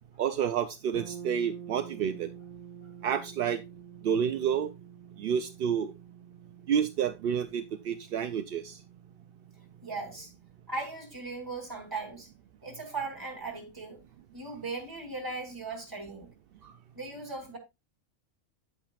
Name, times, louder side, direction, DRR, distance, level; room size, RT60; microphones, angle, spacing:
voice 1, 0.2-2.3 3.0-3.6 4.0-4.7 5.2-5.9 6.7-8.8 16.6-16.7, right 8 dB, 60° right, 0.6 m, -29 dB
sound 1, 0.9-10.7, right 8 dB, 40° right, 1.5 m, -48 dB
voice 2, 9.8-10.3 10.7-12.3 12.6-14.0 14.3-16.3 16.9-17.6, right 3 dB, 15° right, 3.1 m, -38 dB
8.9 x 8.7 x 2.4 m
omnidirectional pair, 1.4 m